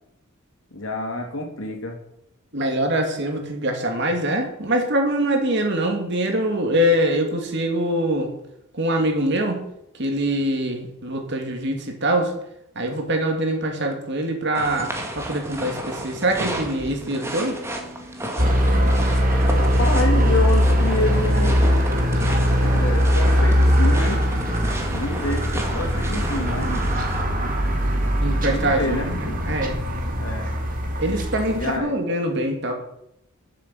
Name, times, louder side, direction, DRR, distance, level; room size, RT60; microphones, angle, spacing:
voice 1, 0.7-2.0 19.6-21.8 22.5-24.2 24.9-26.8 28.4-29.6 30.1-30.6 31.6-32.0, left 2 dB, 65° left, 2 dB, 2.7 m, -28 dB
voice 2, 2.5-8.3 8.7-9.7 10.0-12.3 12.8-17.6 28.2-29.0 29.5-29.8 31.0-32.7, right 1 dB, 55° right, 3 dB, 2.6 m, -23 dB
sound 1, 14.5-27.2, right 1 dB, 10° right, 1.8 m, -33 dB
sound 2, 18.4-31.8, equal, 40° right, 2.0 m, -20 dB
12.0 x 7.6 x 7.1 m, 0.77 s
head